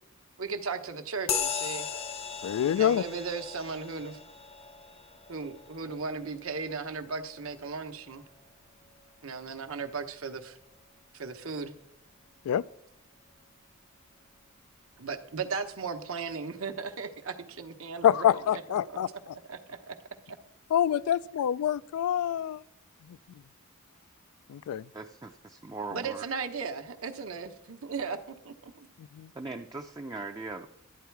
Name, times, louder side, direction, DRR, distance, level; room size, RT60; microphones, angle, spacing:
voice 1, 0.4-2.0 2.7-4.2 5.3-8.2 9.2-10.6 11.1-11.7 15.0-18.3 18.5-20.0 25.9-28.9, right 5 dB, 65° right, 1.0 m, -36 dB
sound 1, 1.3-9.2, left 6 dB, 25° left, 0.6 m, -38 dB
voice 2, 2.4-3.0 12.5-12.6 18.0-19.1 20.7-22.6 24.5-24.8 29.2-29.3, left 10 dB, 85° left, 0.3 m, -26 dB
voice 3, 24.9-26.3 29.3-30.7, right 3 dB, 15° right, 0.5 m, -39 dB
12.5 x 9.1 x 4.6 m
head